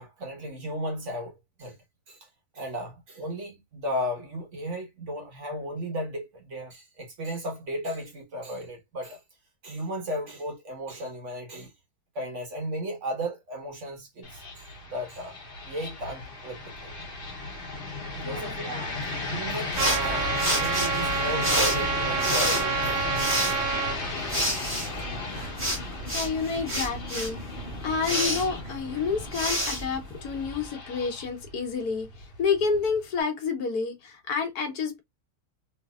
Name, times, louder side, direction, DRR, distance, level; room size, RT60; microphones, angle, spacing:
voice 1, 0.0-1.3 1.6-1.7 2.1-2.3 2.5-9.2 9.6-11.7 12.1-15.4 15.7-16.9 18.1-23.0 23.4-23.6 24.2-24.3 24.9-25.0, equal, 55° right, 1.5 m, -35 dB
sound 1, 14.2-33.2, left 3 dB, 40° left, 1.2 m, -35 dB
voice 2, 18.2-18.6 26.1-27.4 27.8-35.0, left 5 dB, 80° left, 1.5 m, -29 dB
sound 2, 19.7-30.7, equal, 10° right, 1.8 m, -30 dB
Trumpet, 19.8-24.0, right 8 dB, 90° right, 1.3 m, -29 dB
3.3 x 3.2 x 2.3 m
omnidirectional pair, 1.6 m